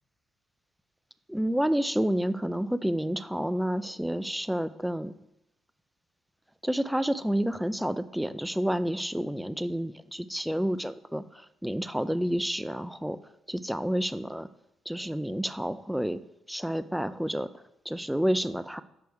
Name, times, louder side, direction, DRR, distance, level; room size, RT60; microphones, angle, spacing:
voice 1, 1.3-5.1 6.6-13.2 13.5-14.5 14.9-16.2 16.5-17.5 17.9-18.8, equal, 5° right, 14 dB, 0.4 m, -29 dB
8.0 x 5.1 x 4.6 m, 0.84 s
cardioid pair, 90°, 0 cm